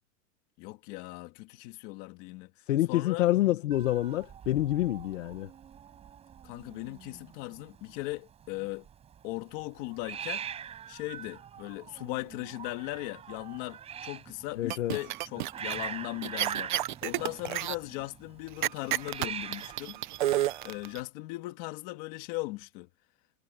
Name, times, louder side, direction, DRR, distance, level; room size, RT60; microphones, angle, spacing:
voice 1, 0.6-2.5 2.9-3.3 6.4-8.9 9.2-10.5 10.9-20.0 20.3-22.9, left 20 dB, 30° left, 2.6 m, -38 dB
voice 2, 2.7-5.5 14.6-15.0, left 14 dB, 55° left, 1.4 m, -27 dB
Hiss, 3.7-21.0, right 8 dB, 15° right, 5.6 m, -44 dB
sound 1, 14.7-15.8 16.2-17.7 18.6-21.0, right 14 dB, 30° right, 0.7 m, -30 dB
supercardioid pair, 180°, 45 cm